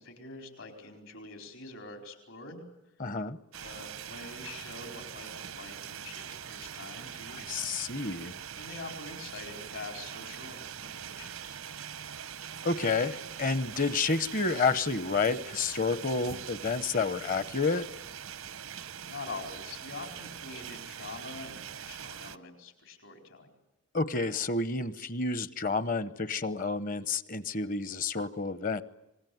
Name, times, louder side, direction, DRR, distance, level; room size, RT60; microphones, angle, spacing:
voice 1, 0.0-2.6 3.6-7.4 8.5-11.6 19.1-23.5, left 3 dB, 75° left, 5 dB, 4.6 m, -45 dB
voice 2, 3.0-3.4 7.5-8.3 12.6-17.8 23.9-28.8, left 4 dB, 40° left, 15 dB, 0.9 m, -30 dB
sound 1, 3.5-22.4, right 9 dB, 85° right, 0.9 m, -43 dB
26.0 x 20.5 x 9.4 m, 0.93 s
head